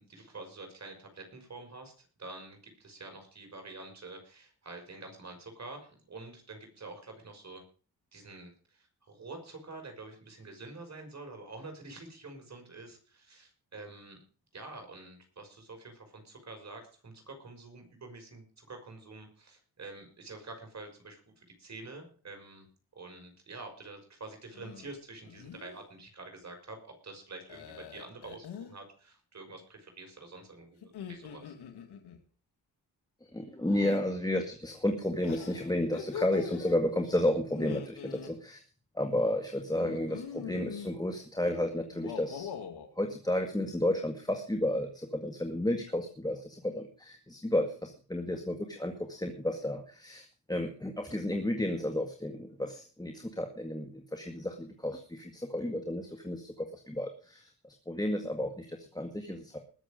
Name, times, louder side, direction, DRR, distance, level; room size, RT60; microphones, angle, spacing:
voice 1, 0.0-1.9 2.2-7.6 8.1-14.2 14.5-22.7 22.9-26.8 27.0-31.5, right 3 dB, 45° right, 4 dB, 5.8 m, -47 dB
sound 1, 24.5-24.9 25.3-25.8 27.5-28.7 30.8-32.2 33.6-34.0 35.2-36.8 37.5-38.3 39.8-40.9 41.9-42.9, left 8 dB, 85° left, 2.2 m, -43 dB
voice 2, 33.3-38.6 38.9-42.5 43.0-59.6, left 1 dB, 10° left, 4 dB, 1.9 m, -32 dB
20.0 x 7.4 x 5.2 m, 0.40 s
cardioid pair, 65°, 38 cm